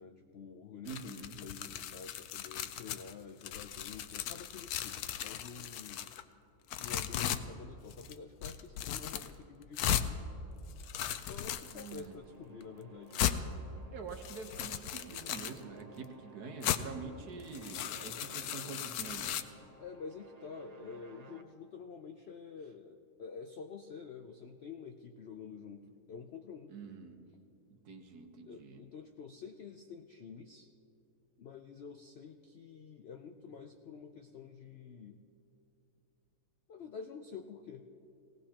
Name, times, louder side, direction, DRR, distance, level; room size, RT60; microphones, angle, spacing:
voice 1, 0.0-6.1 6.8-10.2 11.3-13.2 19.8-26.7 28.4-30.7 31.4-35.2 36.7-37.9, left 5 dB, 90° left, 6 dB, 0.5 m, -48 dB
voice 2, 0.8-1.4 11.7-12.2 13.9-19.6 26.7-27.2 27.8-28.8, right 5 dB, 70° right, 5 dB, 1.6 m, -46 dB
sound 1, 0.9-3.1 3.4-6.2 6.7-7.4 7.9-8.1 8.4-9.3 9.8-10.1 10.7-12.0 12.6-12.7 13.1-13.4 14.1-15.6 16.6-16.8 17.4-19.4, left 11 dB, 70° left, 1.0 m, -37 dB
sound 2, 11.4-21.4, right 3 dB, 50° right, 0.4 m, -57 dB
18.0 x 18.0 x 2.9 m, 2.9 s
omnidirectional pair, 1.8 m